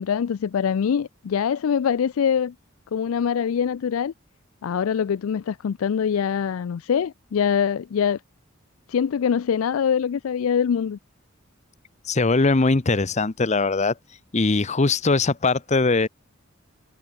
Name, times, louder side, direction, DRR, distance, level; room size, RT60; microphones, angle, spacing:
voice 1, 0.0-2.5 2.9-4.1 4.6-8.2 8.9-11.0, left 7 dB, 85° left, 0.4 m, -23 dB
voice 2, 12.1-13.9 14.3-16.1, left 3 dB, 35° left, 0.8 m, -21 dB
head